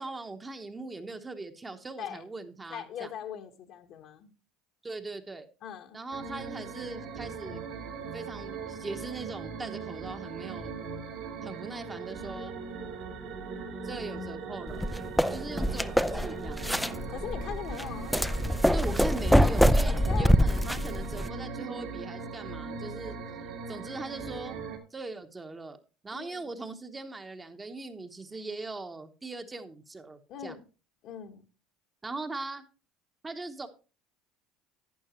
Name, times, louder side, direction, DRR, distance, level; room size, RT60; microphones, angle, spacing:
voice 1, 0.0-3.1 4.8-5.5 5.9-7.6 8.1-10.7 11.4-12.6 13.8-14.9 15.3-16.7 18.7-23.1 23.7-24.6 24.9-30.6 32.0-32.6 33.2-33.7, right 3 dB, 15° right, 1.0 m, -40 dB
voice 2, 2.7-4.3 5.6-6.0 17.1-18.1 20.1-20.3 26.1-26.5 30.3-30.6 31.0-31.4, left 9 dB, 60° left, 1.4 m, -40 dB
sound 1, 6.1-24.8, right 4 dB, 70° right, 2.3 m, -40 dB
sound 2, 14.7-21.3, equal, ahead, 0.4 m, -25 dB
11.5 x 8.5 x 3.0 m
supercardioid pair, 110°, 0 cm